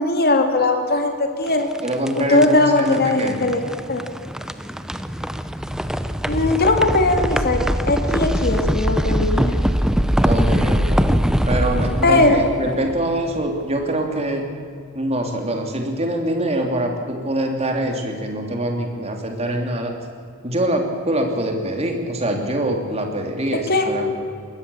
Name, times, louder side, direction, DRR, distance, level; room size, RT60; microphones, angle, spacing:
voice 1, 0.0-1.7 2.2-3.6 3.9-4.0 6.3-7.6 7.9-9.6 12.0-12.4 23.7-23.9, left 2 dB, 45° left, 5 dB, 2.3 m, -19 dB
sound 1, 1.5-13.6, equal, 5° right, 0.7 m, -22 dB
voice 2, 1.8-3.5 10.2-11.1 11.4-14.4 14.9-19.9 20.4-24.1, right 1 dB, 30° right, 3 dB, 3.0 m, -24 dB
22.5 x 18.5 x 7.1 m, 2.3 s
head